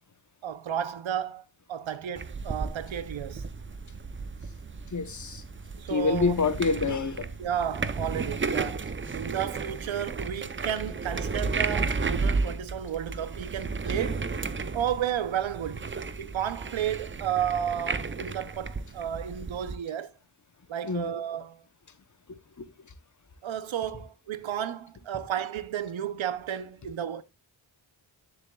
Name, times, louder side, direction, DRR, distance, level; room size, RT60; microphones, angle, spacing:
voice 1, 0.4-3.5 5.7-6.4 7.4-14.4 14.7-15.9 16.2-20.1 20.7-21.6 23.4-27.2, right 9 dB, 75° right, 0.8 m, -32 dB
sound 1, 2.1-19.8, right 4 dB, 25° right, 0.6 m, -33 dB
voice 2, 4.9-5.4 5.9-7.3 20.8-21.1 22.6-22.7, left 4 dB, 40° left, 0.9 m, -27 dB
9.8 x 6.8 x 2.3 m
cardioid pair, 75°, 48 cm